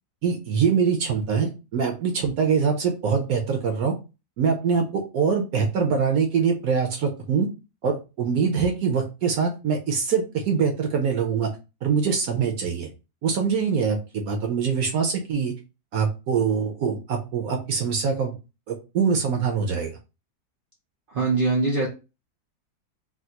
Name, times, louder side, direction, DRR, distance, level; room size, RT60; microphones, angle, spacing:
voice 1, 0.2-3.9 4.4-7.5 7.8-11.5 11.8-12.9 13.2-15.5 15.9-18.4 18.7-19.9, right 6 dB, 70° right, 1.0 m, -24 dB
voice 2, 21.1-21.9, right 3 dB, 85° right, 0.4 m, -22 dB
3.5 x 2.3 x 2.8 m
omnidirectional pair, 1.8 m